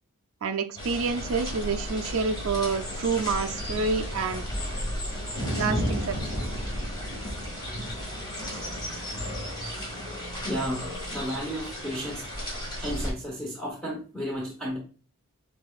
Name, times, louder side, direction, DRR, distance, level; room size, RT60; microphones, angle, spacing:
voice 1, 0.4-4.5 5.6-6.2, right 4 dB, 65° right, 0.4 m, -28 dB
sound 1, 0.8-13.1, equal, 20° left, 1.6 m, -33 dB
voice 2, 10.4-12.3 12.8-14.8, equal, 5° left, 1.0 m, -33 dB
5.8 x 3.4 x 2.3 m
head